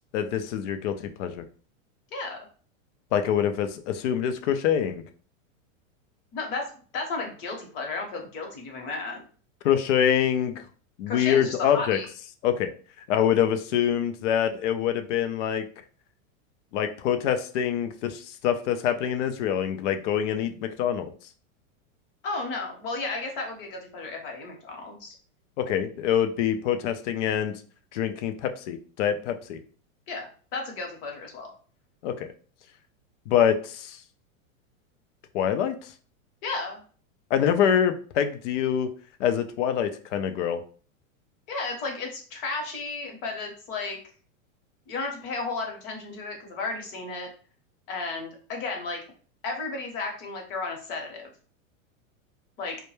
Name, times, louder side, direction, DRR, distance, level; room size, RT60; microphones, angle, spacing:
voice 1, 0.1-1.4 3.1-5.0 9.6-10.6 11.0-12.0 12.4-12.7 13.1-15.6 16.7-21.1 25.6-27.5 27.9-29.6 32.0-32.3 33.3-34.0 35.3-35.9 37.3-38.9 39.2-40.6, left 9 dB, 60° left, 9 dB, 0.5 m, -25 dB
voice 2, 2.1-2.5 6.3-9.2 11.1-12.1 22.2-25.1 30.1-31.5 36.4-36.8 41.5-44.0 44.9-47.3 47.9-49.0 49.4-51.3 52.6-52.8, left 3 dB, 45° left, 1 dB, 0.9 m, -33 dB
2.2 x 2.1 x 3.0 m, 0.42 s
supercardioid pair, 140°, 41 cm